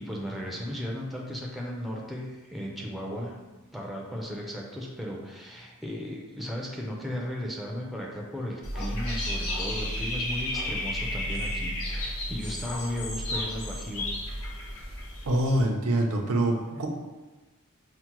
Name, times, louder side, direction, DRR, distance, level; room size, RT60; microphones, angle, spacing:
voice 1, 0.0-3.3 3.7-14.1, equal, ahead, -2 dB, 0.4 m, -35 dB
Dog / Bird, 8.6-15.6, left 1 dB, 70° left, 0.8 m, -32 dB
voice 2, 15.3-16.9, right 1 dB, 70° right, 2 dB, 0.5 m, -25 dB
5.6 x 2.1 x 2.9 m, 1.2 s
head